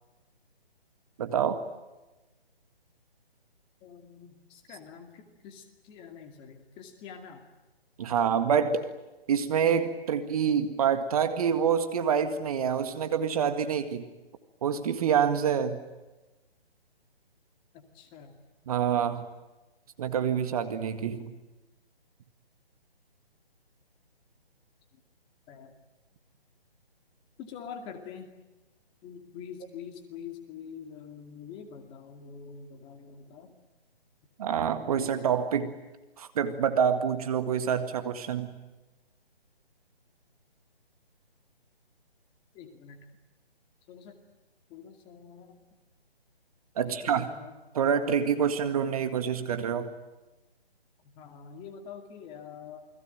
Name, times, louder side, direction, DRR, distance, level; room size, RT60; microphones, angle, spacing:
voice 1, 1.2-1.6 8.0-8.9 9.3-14.1 14.6-15.8 18.7-19.3 20.0-21.3 34.4-35.7 36.2-38.5 46.8-47.2 47.7-49.9, right 7 dB, 35° right, 9 dB, 1.9 m, -27 dB
voice 2, 3.8-7.4 8.1-8.8 17.7-18.4 25.5-25.7 27.4-28.3 29.0-33.6 42.5-43.0 43.9-44.1 44.7-45.6 46.8-47.6 51.0-52.8, left 7 dB, 15° left, 5 dB, 2.4 m, -45 dB
29.0 x 21.5 x 9.2 m, 1.1 s
figure-of-eight pair, 150°, 31 cm